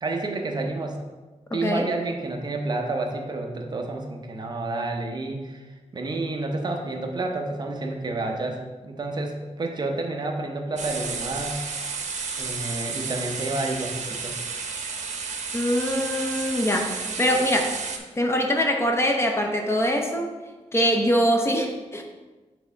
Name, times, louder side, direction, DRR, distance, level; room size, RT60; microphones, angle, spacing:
voice 1, 0.0-1.0 1.5-5.7 5.9-11.6 12.4-14.4, right 2 dB, 35° right, 2 dB, 0.7 m, -30 dB
sound 1, 10.8-18.0, right 5 dB, 75° right, 0.8 m, -32 dB
voice 2, 15.5-17.7 18.2-20.3 20.7-22.0, equal, 20° left, 2 dB, 0.6 m, -23 dB
6.2 x 3.5 x 5.5 m, 1.2 s
wide cardioid pair, 175°, 12 cm